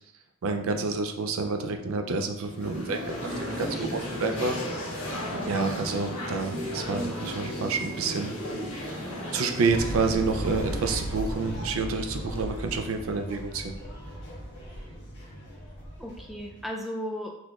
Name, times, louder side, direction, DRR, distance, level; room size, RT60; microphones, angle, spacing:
voice 1, 0.4-4.6 5.5-8.3 9.3-13.7, right 4 dB, 75° right, 5 dB, 0.4 m, -29 dB
sound 1, 2.4-12.4, equal, 90° left, 1.3 m, -35 dB
voice 2, 3.6-4.0 5.4-5.7 16.0-17.3, equal, ahead, 0 dB, 0.3 m, -36 dB
sound 2, 9.6-16.6, right 1 dB, 55° left, 1.1 m, -36 dB
4.0 x 3.0 x 2.3 m, 0.84 s
head